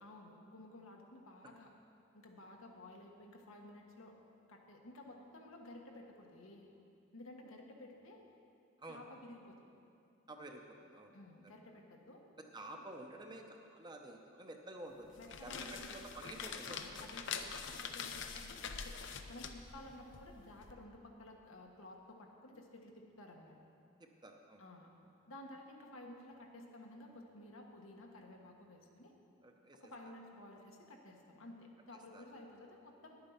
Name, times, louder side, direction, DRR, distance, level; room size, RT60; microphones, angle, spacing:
voice 1, 0.0-1.7 2.1-4.1 4.5-6.7 7.1-8.2 8.9-9.6 11.1-12.2 12.7-12.8 15.2-16.0 16.7-19.0 19.3-23.5 24.6-24.9 25.3-29.1 29.8-33.2, left 1 dB, 85° left, 1 dB, 1.3 m, -54 dB
voice 2, 10.3-11.1 12.5-15.5 15.9-17.1 24.0-24.6 29.4-29.8 32.1-32.2, right 1 dB, 20° right, 3 dB, 0.7 m, -51 dB
sound 1, 15.0-20.7, left 6 dB, 65° left, 0.6 m, -45 dB
10.5 x 8.6 x 5.8 m, 2.6 s
head